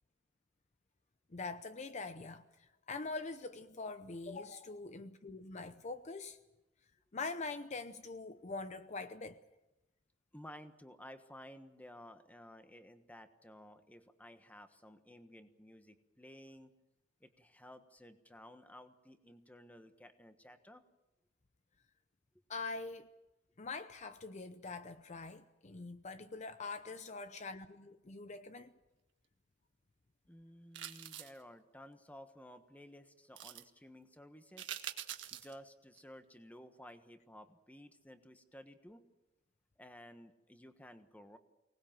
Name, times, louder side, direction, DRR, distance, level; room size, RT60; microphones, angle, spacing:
voice 1, 1.3-6.4 7.1-9.4 22.5-23.1 23.6-28.7, left 3 dB, 40° left, 0.7 m, -44 dB
voice 2, 10.3-16.7 17.2-20.8 30.3-34.7 35.3-39.1 39.8-41.4, equal, 10° left, 1.3 m, -55 dB
sound 1, 30.7-31.4 33.4-33.6 34.6-35.5 36.0-36.1, right 11 dB, 90° right, 1.6 m, -44 dB
24.5 x 19.5 x 7.5 m
head